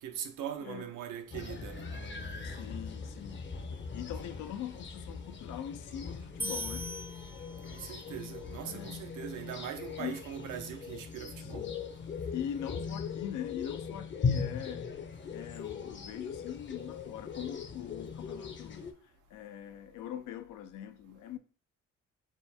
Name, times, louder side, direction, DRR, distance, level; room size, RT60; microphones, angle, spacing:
voice 1, 0.0-2.6 7.7-11.7, right 9 dB, 85° right, 0.7 m, -41 dB
voice 2, 0.6-0.9 2.4-3.5 3.9-6.9 8.6-9.1 10.0-10.2 11.4-11.8 12.3-14.9 15.3-18.9 19.3-21.4, left 10 dB, 80° left, 0.5 m, -42 dB
sound 1, 1.3-18.9, left 5 dB, 40° left, 0.7 m, -39 dB
sound 2, 6.4-8.0, equal, 5° right, 0.4 m, -40 dB
3.7 x 2.1 x 4.2 m
cardioid pair, 90°, 30 cm